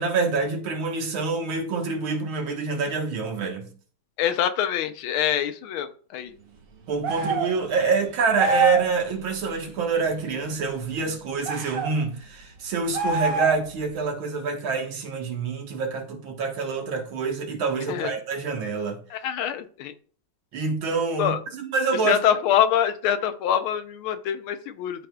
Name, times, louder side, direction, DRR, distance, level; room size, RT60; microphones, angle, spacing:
voice 1, 0.0-3.7 6.9-19.0 20.5-22.2, right 4 dB, 75° right, 2.1 m, -26 dB
voice 2, 4.2-6.3 17.9-18.1 19.1-19.9 21.2-21.4 22.0-25.1, left 9 dB, 80° left, 1.5 m, -25 dB
sound 1, 7.0-7.6 8.4-8.9 11.4-11.9 12.9-13.7, right 4 dB, 55° right, 1.1 m, -25 dB
12.5 x 4.2 x 2.3 m
omnidirectional pair, 2.3 m